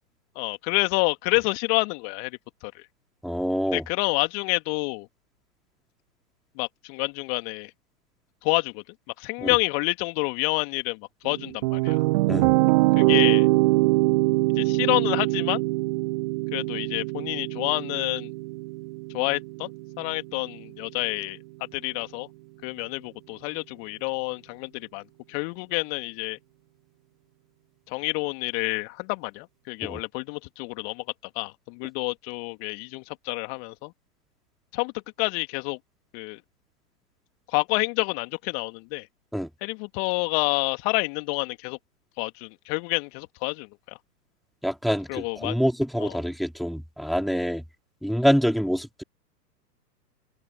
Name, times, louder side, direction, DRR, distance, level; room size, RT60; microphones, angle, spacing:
voice 1, 0.3-2.4 2.6-2.9 3.7-5.1 6.5-7.7 8.4-8.8 9.2-12.0 13.0-13.5 14.5-15.6 16.5-18.3 19.1-19.7 20.0-21.4 21.7-22.3 22.6-26.4 27.9-31.0 31.3-33.9 34.7-34.9 35.2-35.8 36.1-36.4 37.5-39.1 39.6-41.8 42.2-44.0 45.1-45.5 46.0-46.2, left 35 dB, 40° left, 2.9 m, -28 dB
voice 2, 3.2-3.8 9.4-9.6 12.3-12.5 29.8-30.0 39.3-39.5 44.6-47.6 48.0-49.0, equal, ahead, 4.1 m, -26 dB
sound 1, 11.3-20.4, right 22 dB, 25° right, 0.5 m, -23 dB
figure-of-eight pair, 110°, 49 cm